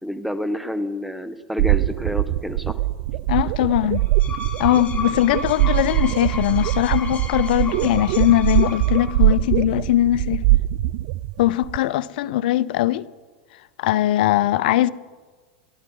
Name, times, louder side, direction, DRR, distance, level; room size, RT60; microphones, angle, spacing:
voice 1, 0.0-2.8 3.6-3.7, left 1 dB, ahead, 1.2 m, -28 dB
sound 1, 1.6-11.8, right 16 dB, 60° right, 0.5 m, -22 dB
voice 2, 3.3-4.1 4.6-10.4 11.4-13.1 13.8-14.9, left 14 dB, 70° left, 0.7 m, -20 dB
sound 2, 4.0-9.4, left 3 dB, 30° left, 4.1 m, -34 dB
29.0 x 12.0 x 4.0 m
hypercardioid pair, 105°, 5 cm